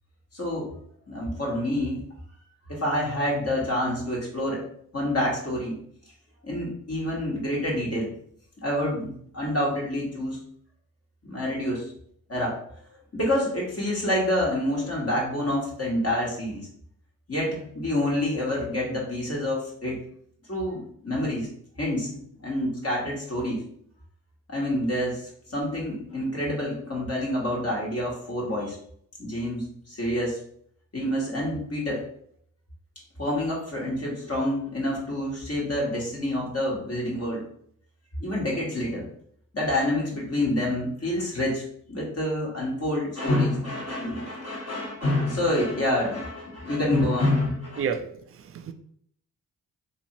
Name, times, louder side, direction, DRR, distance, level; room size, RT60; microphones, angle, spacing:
voice 1, 0.3-0.7 1.1-2.0 2.7-4.6 4.9-5.8 6.4-8.1 8.6-10.4 11.2-11.8 12.3-12.5 13.1-16.7 17.3-20.0 20.5-21.5 21.8-22.1 22.4-23.6 24.5-28.8 29.2-30.4 30.9-32.0 33.2-37.4 38.2-39.1 39.5-41.6 41.9-47.8, left 1 dB, 30° left, 1.2 m, -27 dB
voice 2, 47.8-48.7, right 7 dB, 35° right, 0.4 m, -31 dB
2.7 x 2.7 x 2.8 m
hypercardioid pair, 40°, 44 cm